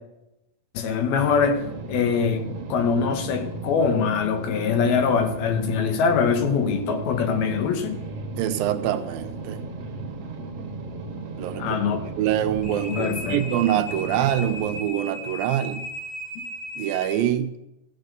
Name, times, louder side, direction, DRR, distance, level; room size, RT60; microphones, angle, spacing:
voice 1, 0.7-8.0 11.6-12.0 12.9-13.5, left 6 dB, 90° left, 6 dB, 3.2 m, -23 dB
sound 1, 1.1-14.8, right 3 dB, 50° right, 2.1 m, -35 dB
voice 2, 8.4-9.6 11.4-11.8 12.0-15.9 16.8-17.5, right 11 dB, 80° right, 9 dB, 2.4 m, -25 dB
sound 2, 12.5-17.1, equal, 50° left, 2.3 m, -36 dB
15.0 x 7.7 x 6.8 m, 0.91 s
omnidirectional pair, 4.2 m